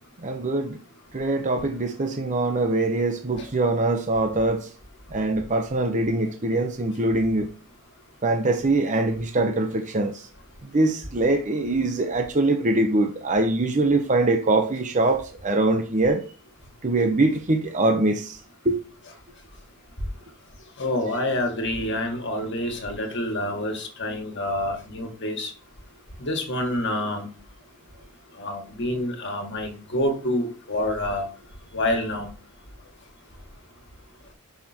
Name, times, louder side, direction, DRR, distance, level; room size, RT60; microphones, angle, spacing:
voice 1, 0.2-0.8 1.1-4.7 5.1-7.5 8.2-10.3 10.7-16.2 16.8-18.4 18.6-18.8, right 2 dB, 35° right, 0.7 m, -23 dB
voice 2, 20.8-25.5 26.2-27.3 28.4-31.2 31.7-32.3, left 1 dB, 55° left, 1.8 m, -27 dB
6.2 x 5.7 x 4.3 m
head